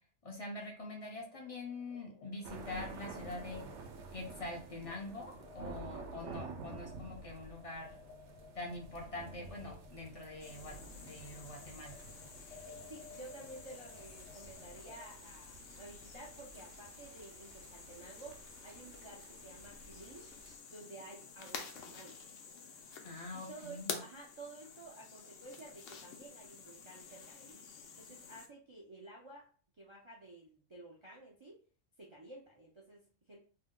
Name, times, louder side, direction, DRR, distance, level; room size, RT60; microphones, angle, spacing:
voice 1, 0.2-3.7 4.1-7.9 8.6-12.0 23.0-24.0, left 2 dB, 45° left, 0 dB, 0.5 m, -44 dB
sound 1, 1.0-15.1, left 4 dB, 60° left, 1.1 m, -58 dB
sound 2, 2.4-20.6, right 4 dB, 70° right, 0.9 m, -51 dB
sound 3, 10.4-28.5, left 6 dB, 80° left, 0.9 m, -50 dB
voice 2, 12.7-20.3 20.7-22.2 23.3-27.7 27.9-29.4 29.8-31.6 32.0-33.4, right 2 dB, 50° right, -3 dB, 0.3 m, -52 dB
2.6 x 2.1 x 3.7 m, 0.41 s
omnidirectional pair, 1.3 m